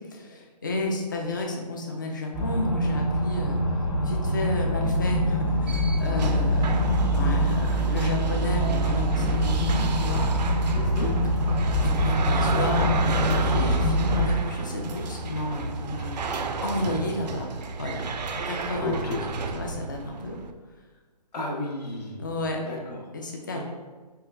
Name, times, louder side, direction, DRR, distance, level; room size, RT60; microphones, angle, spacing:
voice 1, 0.1-10.3 11.8-16.2 16.6-17.5 17.8-18.0 18.3-20.4 22.2-22.6 23.1-23.6, left 1 dB, 30° left, 1 dB, 0.4 m, -32 dB
sound 1, 2.3-14.3, equal, 45° left, 0.9 m, -24 dB
sound 2, 5.4-20.5, right 4 dB, 80° right, 0.4 m, -32 dB
voice 2, 10.7-11.1 18.8-19.2 21.3-22.2 22.7-23.0 23.5-23.6, left 2 dB, 70° left, -2 dB, 1.0 m, -32 dB
4.4 x 2.3 x 3.2 m, 1.4 s
hypercardioid pair, 170°, 21 cm